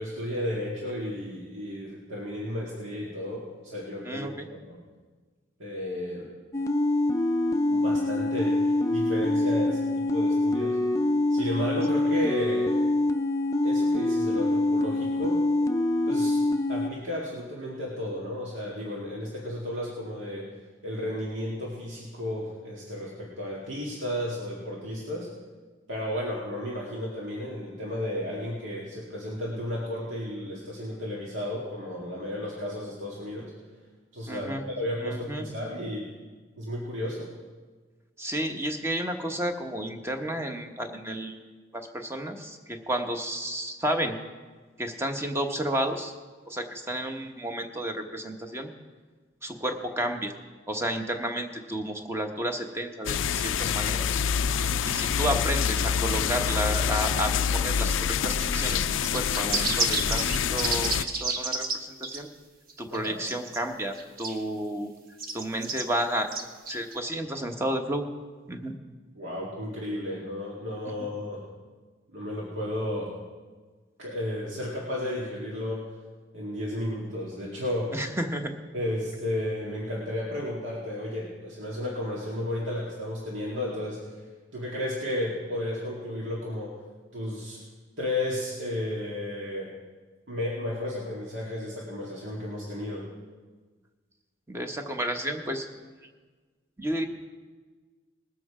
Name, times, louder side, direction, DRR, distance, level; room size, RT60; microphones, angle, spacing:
voice 1, 0.0-4.8 5.6-6.3 7.7-10.8 11.3-12.8 13.6-15.4 16.1-16.4 16.7-20.5 20.8-25.3 25.9-33.5 34.1-36.1 36.6-37.3 62.9-63.2 69.1-71.4 72.1-73.1 74.0-75.8 76.3-78.0 78.7-84.3 84.5-86.7 87.1-87.6 88.0-89.7 90.3-93.1, left 1 dB, 70° right, -5 dB, 2.2 m, -33 dB
voice 2, 4.0-4.5 34.3-34.6 35.0-35.5 38.2-41.4 41.7-44.2 44.8-46.1 46.5-48.7 49.4-50.3 50.7-54.1 54.8-62.3 62.8-64.9 65.3-66.3 66.7-68.0 68.5-68.8 71.0-71.1 77.9-78.5 94.5-95.7 96.8-97.0, right 1 dB, 15° right, 5 dB, 1.0 m, -31 dB
sound 1, 6.5-16.9, left 2 dB, 15° left, 0.5 m, -25 dB
sound 2, 53.1-61.0, left 7 dB, 85° left, 0.4 m, -26 dB
sound 3, 58.4-61.8 62.0-62.2 62.7-63.6 63.9-64.4 65.2-65.8 66.3-67.0, right 4 dB, 50° right, 1.1 m, -31 dB
20.0 x 7.8 x 4.9 m, 1.4 s
head